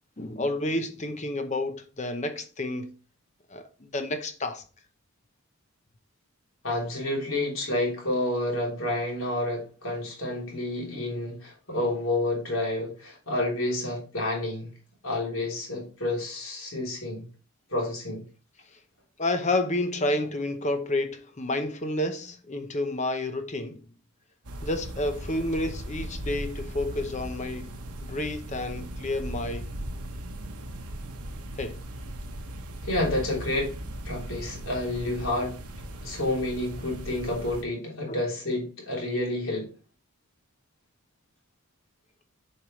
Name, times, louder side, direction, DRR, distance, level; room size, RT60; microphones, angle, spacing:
voice 1, 0.2-2.9 3.5-4.6 19.2-23.8 24.6-27.7 28.0-29.7 31.6-31.8, left 1 dB, 30° left, 0.8 m, -30 dB
voice 2, 6.6-14.7 15.0-17.2 17.7-18.2 32.8-33.7 34.0-35.6 36.0-39.7, left 1 dB, 65° left, 3.3 m, -29 dB
sound 1, 24.4-37.6, right 1 dB, 85° right, 1.1 m, -38 dB
7.2 x 5.0 x 3.1 m
head